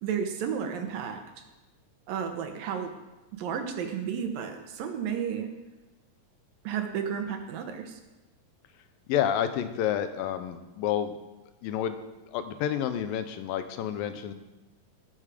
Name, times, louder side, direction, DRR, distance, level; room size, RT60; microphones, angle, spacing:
voice 1, 0.0-1.2 2.1-2.9 3.4-5.5 6.6-8.0, right 7 dB, 80° right, 5 dB, 2.9 m, -32 dB
voice 2, 9.1-11.2 11.6-12.0 12.3-14.3, left 10 dB, 80° left, 10 dB, 2.5 m, -29 dB
18.0 x 7.5 x 5.1 m, 1.1 s
omnidirectional pair, 4.1 m